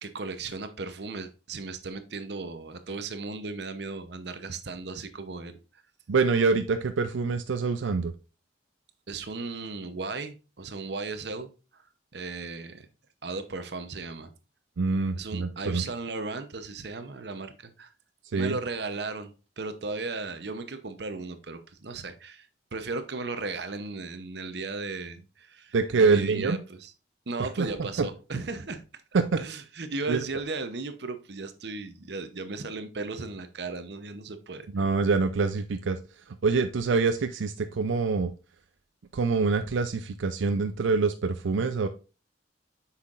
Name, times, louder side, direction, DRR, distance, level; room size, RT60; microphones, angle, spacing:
voice 1, 0.0-5.6 9.1-11.8 12.1-12.9 13.2-14.3 15.1-17.9 18.3-26.9 27.3-28.8 29.4-34.9, right 3 dB, 60° right, 0.8 m, -36 dB
voice 2, 6.1-8.1 14.8-15.8 18.3-18.6 25.7-26.6 27.4-27.7 28.0-28.1 29.1-29.2 30.1-30.2 34.7-36.0 36.4-38.3 39.1-41.9, right 4 dB, 90° right, 0.5 m, -25 dB
8.1 x 5.8 x 2.5 m
head